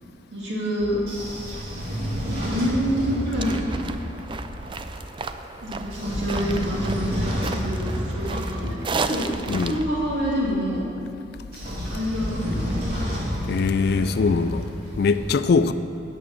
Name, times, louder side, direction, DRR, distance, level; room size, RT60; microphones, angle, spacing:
voice 1, 0.3-1.0 2.3-3.9 5.6-9.3 9.7-10.8 11.9-12.8, equal, 90° right, 2.4 m, -27 dB
Train / Sliding door, 0.8-4.8 5.7-10.5 11.3-15.2, equal, 55° right, 2.7 m, -30 dB
sound 1, 3.1-9.8, right 4 dB, 30° right, 0.3 m, -34 dB
voice 2, 13.5-14.7 15.0-15.7, left 4 dB, 60° left, 0.4 m, -21 dB
8.6 x 6.3 x 7.1 m
head